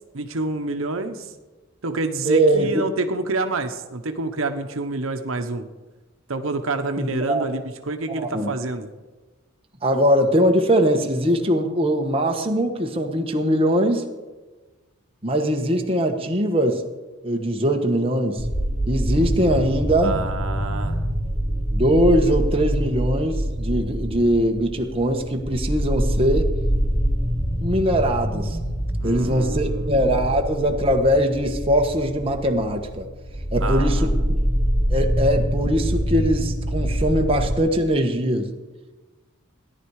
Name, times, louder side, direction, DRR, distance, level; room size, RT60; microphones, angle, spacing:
voice 1, 0.1-1.3 1.8-5.7 6.3-8.9 20.0-21.0 29.0-30.3 33.6-34.3, right 2 dB, 80° right, 7 dB, 1.0 m, -28 dB
voice 2, 2.2-2.7 7.0-7.4 8.1-8.5 9.8-14.0 15.2-16.8 17.2-18.4 18.9-20.2 21.7-26.5 27.6-28.6 29.0-33.1 33.5-34.4 34.9-38.5, equal, 25° right, 2 dB, 1.3 m, -21 dB
sound 1, 18.4-37.6, equal, 25° left, 3.0 m, -25 dB
17.0 x 11.0 x 4.9 m, 1.2 s
head